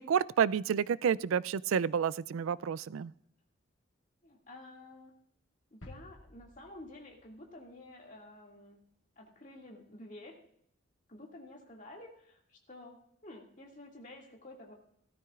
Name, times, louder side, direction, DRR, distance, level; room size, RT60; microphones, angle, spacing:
voice 1, 0.0-3.1, right 7 dB, 80° right, 20 dB, 0.3 m, -30 dB
voice 2, 4.2-5.2 5.7-8.8 9.2-10.4 11.1-14.7, left 1 dB, 40° left, 0 dB, 2.1 m, -51 dB
sound 1, 5.8-7.7 7.9-8.0, left 1 dB, 75° left, 1.6 m, -54 dB
16.5 x 13.0 x 2.4 m, 0.69 s
head